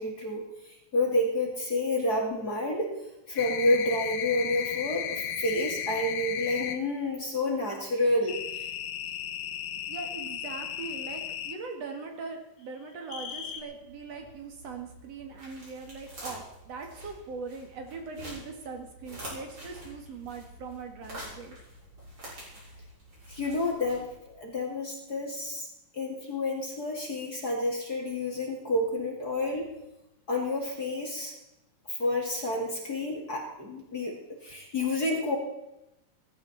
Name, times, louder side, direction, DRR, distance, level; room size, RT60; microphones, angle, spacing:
voice 1, 0.0-2.9 3.3-8.7 23.3-25.7 25.9-29.7 30.3-31.3 31.9-35.4, left 1 dB, 30° left, -1 dB, 2.6 m, -29 dB
sound 1, 3.3-6.8 8.3-11.6 13.1-13.6, left 9 dB, 60° left, 1.2 m, -35 dB
voice 2, 9.8-21.6, right 4 dB, 55° right, 3 dB, 3.1 m, -41 dB
sound 2, 13.4-24.4, equal, 35° right, 7.5 m, -47 dB
16.5 x 16.0 x 4.3 m, 0.91 s
omnidirectional pair, 3.8 m